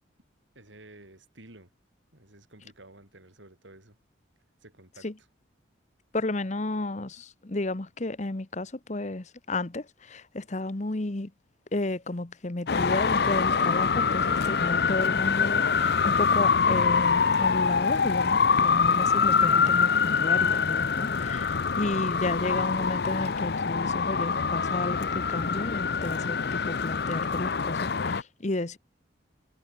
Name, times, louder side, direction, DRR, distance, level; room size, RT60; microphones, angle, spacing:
voice 1, 0.5-1.7 2.1-4.0 4.6-5.1, right 1 dB, 80° right, 6.3 m, -52 dB
voice 2, 6.1-11.3 11.7-28.8, left 2 dB, 40° left, 1.0 m, -32 dB
Traffic noise roadway noise, 12.7-28.2, left 5 dB, 55° left, 0.7 m, -25 dB
head